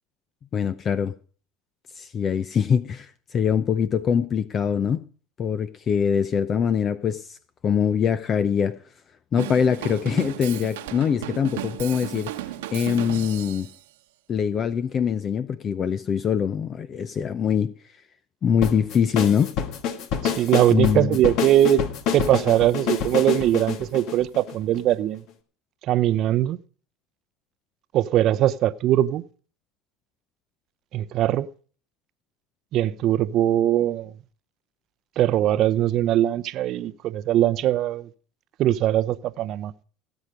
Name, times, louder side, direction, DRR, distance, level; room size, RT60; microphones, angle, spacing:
voice 1, 0.5-1.1 2.0-5.0 5.4-7.4 7.6-8.8 9.3-12.3 12.7-13.7 14.3-17.7 18.4-19.5 20.7-21.2, left 7 dB, 35° left, 0.6 m, -23 dB
Drum kit / Drum, 9.4-13.8, right 13 dB, 85° right, 1.2 m, -34 dB
sound 1, 18.6-24.9, left 7 dB, 60° left, 1.7 m, -27 dB
voice 2, 20.2-21.8 22.1-25.2 25.9-26.6 27.9-29.2 30.9-31.5 32.7-34.1 35.2-38.1 38.6-39.7, right 12 dB, 50° right, 0.7 m, -21 dB
17.5 x 8.1 x 5.0 m
supercardioid pair, 105°, 0 cm